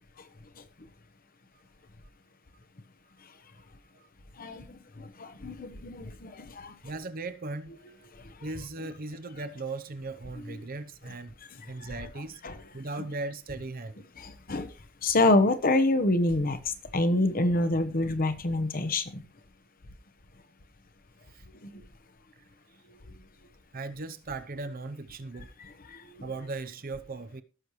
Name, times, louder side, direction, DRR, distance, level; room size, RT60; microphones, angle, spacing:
voice 1, 4.4-6.7 8.1-8.3 10.5-10.6 11.8-11.9 12.4-12.6 14.2-14.7 15.0-19.2 21.6-21.8 25.6-26.2, left 2 dB, 45° left, 1.0 m, -27 dB
voice 2, 6.8-8.1 8.4-11.3 11.7-12.4 12.7-14.0 21.3-21.4 23.7-25.5 26.2-27.4, right 3 dB, 45° right, 0.7 m, -38 dB
17.0 x 6.5 x 3.1 m
head